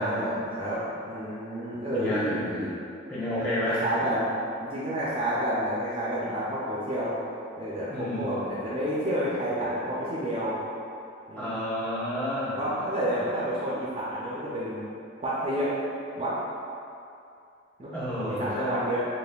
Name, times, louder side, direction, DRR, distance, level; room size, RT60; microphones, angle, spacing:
voice 1, 0.0-2.7 3.7-4.3 4.6-7.2 7.6-10.6 11.3-11.6 12.6-14.8 15.2-15.7 16.2-16.4 17.8-19.1, equal, 30° right, -8 dB, 0.4 m, -30 dB
voice 2, 1.9-2.7 3.1-3.8 6.2-6.3 7.9-8.6 11.4-12.6 17.9-18.8, left 1 dB, 10° left, -10 dB, 0.9 m, -31 dB
4.1 x 3.2 x 2.2 m, 2.6 s
head